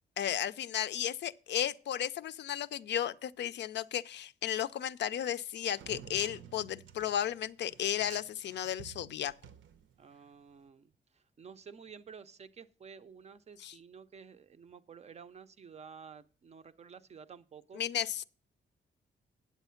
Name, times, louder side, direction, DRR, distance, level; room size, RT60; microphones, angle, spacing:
voice 1, 0.2-9.3 13.6-13.7 17.7-18.2, left 10 dB, 65° left, 0.4 m, -34 dB
sound 1, 5.7-10.3, right 8 dB, 80° right, 0.7 m, -51 dB
voice 2, 10.0-17.8, right 6 dB, 35° right, 0.4 m, -52 dB
8.3 x 8.0 x 5.6 m
wide cardioid pair, 165°, 19 cm